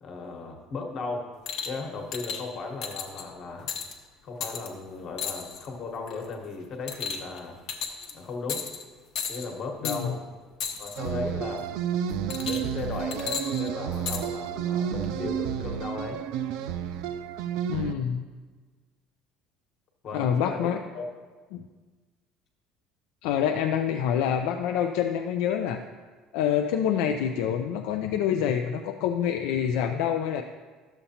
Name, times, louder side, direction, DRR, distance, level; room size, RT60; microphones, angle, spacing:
voice 1, 0.0-1.3 1.6-3.7 4.2-7.6 8.1-8.7 9.3-10.3 10.8-11.7 12.4-16.2 20.0-21.1, left 3 dB, 40° left, 2 dB, 1.2 m, -36 dB
sound 1, 1.5-1.8 2.1-2.4 2.8-3.2 3.7-3.9 4.4-4.7 5.2-5.7 6.1-6.3 6.9-7.4 7.7-8.1 8.5-8.8 9.1-9.5 9.8-10.0 10.6-11.0 12.3-12.8 13.1-14.2 15.0-15.1, left 6 dB, 60° left, 0.9 m, -33 dB
voice 2, 9.8-10.1 17.7-18.3 20.1-20.8 21.5-21.6 23.2-25.8 26.3-30.4, left 9 dB, 85° left, 5 dB, 0.4 m, -26 dB
sound 2, 11.0-17.9, right 9 dB, 75° right, 0.3 m, -31 dB
12.0 x 6.9 x 2.8 m, 1.4 s
cardioid pair, 155°, 0 cm